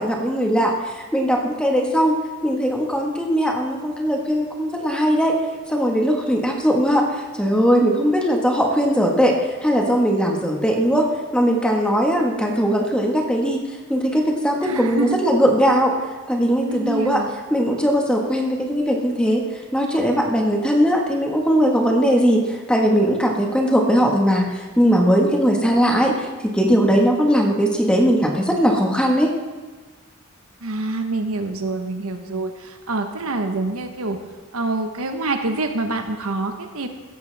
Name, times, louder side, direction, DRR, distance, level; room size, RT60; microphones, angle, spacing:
voice 1, 0.0-2.1 2.4-5.4 5.7-7.0 7.4-11.1 11.3-13.6 13.9-15.9 16.3-17.2 17.5-19.5 19.7-26.3 26.5-29.3, equal, 5° left, 0 dB, 1.6 m, -19 dB
voice 2, 14.6-15.2 16.6-17.3 30.6-34.2 34.5-36.9, right 2 dB, 80° right, 6 dB, 1.2 m, -26 dB
16.0 x 13.5 x 3.5 m, 1.3 s
head